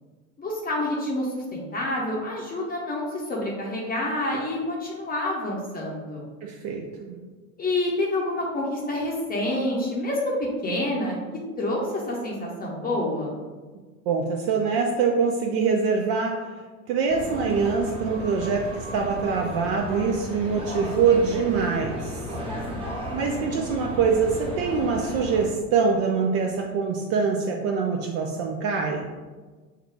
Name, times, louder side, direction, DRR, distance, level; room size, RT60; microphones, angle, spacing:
voice 1, 0.4-6.2 7.6-11.2 11.6-13.3, left 1 dB, 20° left, -3 dB, 0.8 m, -28 dB
voice 2, 6.4-7.2 14.1-16.4 16.9-22.2 23.1-29.1, right 5 dB, 35° right, 1 dB, 0.4 m, -24 dB
sound 1, 17.1-25.5, equal, 15° right, 1.0 m, -34 dB
5.6 x 2.3 x 3.4 m, 1.4 s
hypercardioid pair, 85°, 42 cm